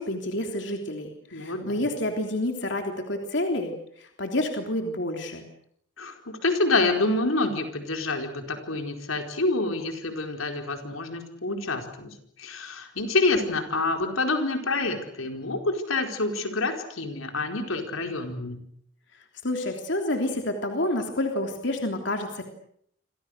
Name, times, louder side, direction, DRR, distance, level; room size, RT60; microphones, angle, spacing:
voice 1, 0.0-3.7 4.0-5.4 19.4-22.5, left 1 dB, 60° left, 3 dB, 3.3 m, -29 dB
voice 2, 1.3-1.8 6.0-18.6, left 2 dB, 85° left, 5 dB, 4.7 m, -27 dB
29.0 x 26.0 x 6.7 m, 0.70 s
head